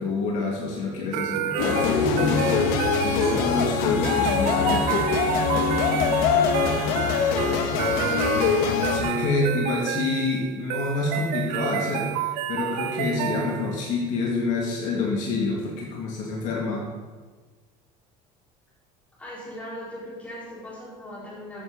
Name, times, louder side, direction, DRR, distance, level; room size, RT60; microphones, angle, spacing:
voice 1, 0.0-2.7 3.0-5.0 8.9-12.1 12.5-16.8, left 3 dB, 55° left, -2 dB, 2.3 m, -27 dB
sound 1, 1.1-13.9, right 11 dB, 75° right, 0.6 m, -30 dB
sound 2, 1.6-9.0, left 6 dB, 70° left, 1.3 m, -23 dB
sound 3, 3.4-7.9, equal, 45° right, 1.7 m, -40 dB
voice 2, 7.2-7.6 19.2-21.6, equal, 10° left, -7 dB, 4.3 m, -39 dB
14.5 x 10.0 x 4.0 m, 1.4 s
cardioid pair, 175°, 15 cm